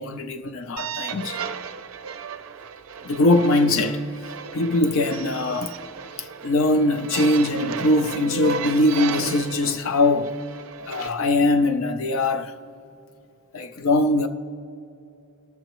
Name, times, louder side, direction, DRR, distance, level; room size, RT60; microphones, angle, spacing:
voice 1, 0.0-1.4 3.0-4.0 4.5-5.7 6.2-10.4 10.8-12.5 13.5-14.3, left 2 dB, 65° left, 0.5 m, -21 dB
sound 1, 0.8-11.1, right 5 dB, 70° right, 0.4 m, -34 dB
19.0 x 6.5 x 3.0 m
head